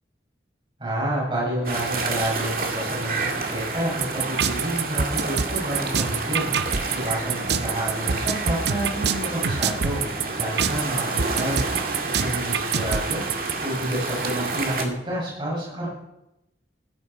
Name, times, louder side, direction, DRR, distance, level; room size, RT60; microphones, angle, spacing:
voice 1, 0.8-6.5 6.9-10.0 10.4-11.6 12.0-13.2 13.6-15.9, right 1 dB, 30° right, -5 dB, 7.1 m, -29 dB
sound 1, 1.6-14.8, right 3 dB, 50° right, 2.1 m, -29 dB
sound 2, 4.0-13.5, right 6 dB, 70° right, 0.8 m, -25 dB
15.5 x 14.5 x 4.6 m, 0.89 s
head